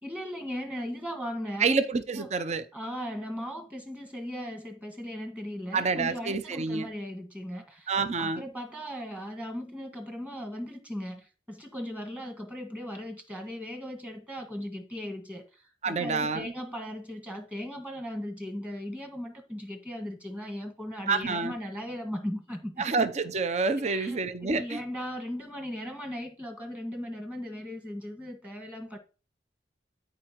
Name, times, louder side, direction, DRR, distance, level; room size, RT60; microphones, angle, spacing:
voice 1, 0.0-1.8 2.1-2.3 2.7-22.9 23.8-29.0, equal, 10° right, 1.6 m, -38 dB
voice 2, 1.6-2.6 5.7-6.9 7.9-8.4 15.8-16.5 21.1-21.5 22.8-24.8, right 4 dB, 40° right, 0.6 m, -28 dB
13.5 x 4.9 x 3.0 m
head